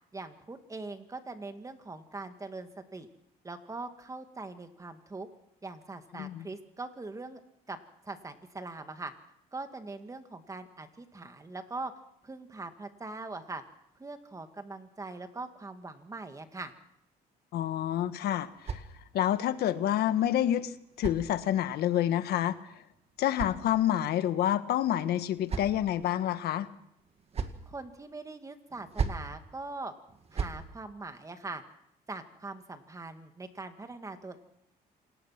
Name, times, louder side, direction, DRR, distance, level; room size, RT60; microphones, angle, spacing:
voice 1, 0.1-3.1 3.4-5.3 5.6-7.4 7.7-7.8 8.0-9.1 9.5-11.9 12.2-13.6 14.0-16.7 27.7-29.9 30.3-31.6 32.1-34.4, right 3 dB, 20° right, 7 dB, 2.1 m, -42 dB
voice 2, 17.5-18.8 19.1-22.5 23.2-26.7, left 11 dB, 70° left, 11 dB, 1.4 m, -28 dB
sound 1, 17.8-19.4 20.4-21.8 22.8-24.2 25.0-26.0 27.0-27.7 28.7-29.3 30.1-30.6, right 5 dB, 35° right, 2.0 m, -38 dB
27.0 x 18.5 x 5.9 m, 0.79 s
cardioid pair, 110°, 17 cm